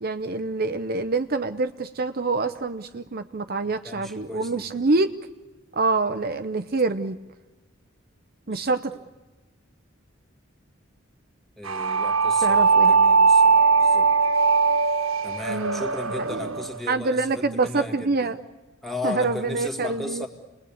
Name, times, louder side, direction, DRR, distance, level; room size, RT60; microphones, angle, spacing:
voice 1, 0.0-5.1 5.7-7.2 8.5-9.0 12.4-13.0 15.5-15.9 16.2-16.6 16.9-18.4 19.0-20.3, right 3 dB, 50° right, 9 dB, 0.8 m, -26 dB
voice 2, 3.8-4.9 8.5-8.8 11.6-14.1 15.2-18.3 18.8-20.3, left 2 dB, ahead, 3 dB, 2.2 m, -35 dB
sound 1, 11.7-16.8, right 4 dB, 85° right, 1.4 m, -20 dB
29.0 x 20.5 x 8.6 m, 1.2 s
head